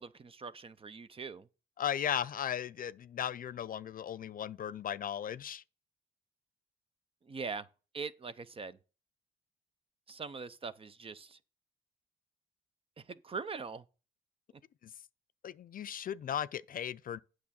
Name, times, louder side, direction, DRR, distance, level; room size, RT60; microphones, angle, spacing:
voice 1, 0.0-1.4 7.3-7.7 7.9-8.8 10.1-11.4 13.1-13.8, right 5 dB, 30° right, 0.5 m, -42 dB
voice 2, 1.8-5.6 15.4-17.2, left 9 dB, 45° left, 0.4 m, -36 dB
8.5 x 6.3 x 4.2 m
cardioid pair, 90°, 20 cm